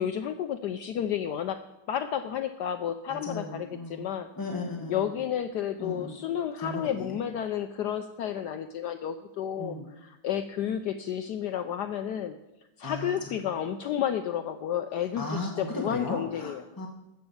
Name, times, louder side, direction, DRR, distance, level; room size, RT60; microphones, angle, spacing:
voice 1, 0.0-1.6 1.9-4.3 4.9-12.4 12.8-16.6, left 9 dB, 80° left, 8 dB, 0.9 m, -31 dB
voice 2, 3.1-4.1 4.4-5.2 5.8-6.1 6.6-7.2 9.6-9.8 12.8-13.4 15.2-16.9, left 2 dB, 15° left, -1 dB, 0.7 m, -36 dB
14.0 x 5.9 x 7.0 m, 0.97 s
omnidirectional pair, 2.3 m